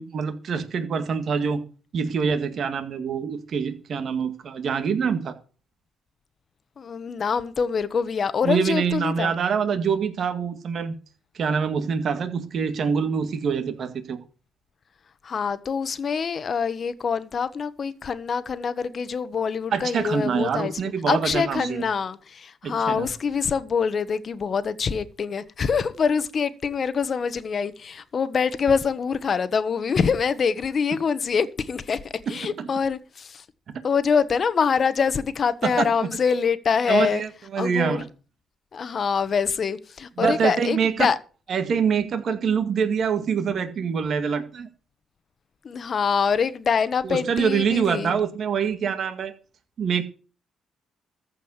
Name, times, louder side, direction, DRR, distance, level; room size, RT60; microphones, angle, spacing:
voice 1, 0.0-1.6 1.9-5.4 8.4-10.9 11.3-14.2 19.7-21.8 22.6-23.1 32.3-32.7 35.6-35.9 36.9-38.1 40.2-41.1 41.5-44.7 47.0-49.3 49.8-50.0, right 6 dB, 55° right, 2.0 m, -25 dB
voice 2, 6.8-9.3 15.2-20.7 21.1-33.4 33.8-37.2 37.6-38.0 38.7-41.2 45.6-48.2, left 6 dB, 45° left, 1.2 m, -25 dB
14.5 x 5.2 x 8.1 m
cardioid pair, 90°, 0 cm